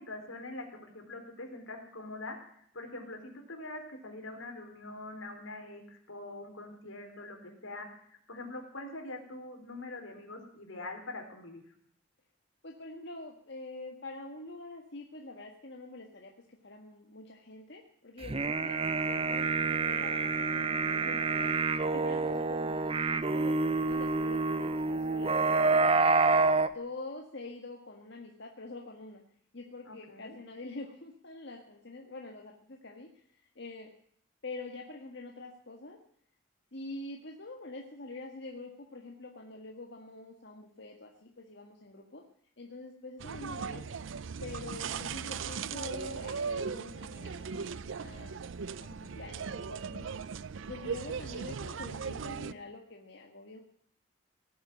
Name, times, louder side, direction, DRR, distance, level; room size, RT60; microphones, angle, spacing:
voice 1, 0.0-11.6 20.7-21.1 29.9-30.4, left 2 dB, 85° left, 3 dB, 4.0 m, -44 dB
voice 2, 12.6-21.5 21.9-26.1 26.6-29.2 29.5-33.9 34.4-36.0 36.7-42.2 42.6-44.0 44.4-48.4 48.8-50.1 50.7-53.6, left 2 dB, 60° left, 1 dB, 1.7 m, -45 dB
sound 1, 18.2-26.7, right 3 dB, 30° right, 0.7 m, -28 dB
sound 2, 43.2-52.5, right 6 dB, 70° right, 0.5 m, -38 dB
18.5 x 8.0 x 9.0 m, 0.66 s
head